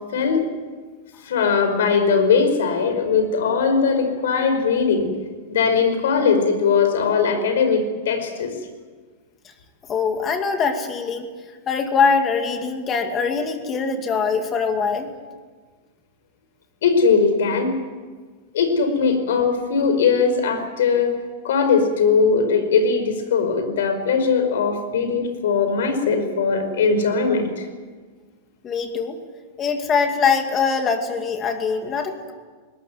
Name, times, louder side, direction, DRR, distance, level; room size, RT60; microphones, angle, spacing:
voice 1, 1.2-5.1 5.5-8.5 16.8-17.8 18.5-21.1 21.4-27.7, left 5 dB, 85° left, 8 dB, 5.1 m, -20 dB
voice 2, 9.9-11.3 11.7-15.1 28.6-29.2 29.6-32.3, left 5 dB, 20° left, 6 dB, 2.4 m, -22 dB
21.5 x 19.5 x 9.4 m, 1.5 s
supercardioid pair, 165°, 0 cm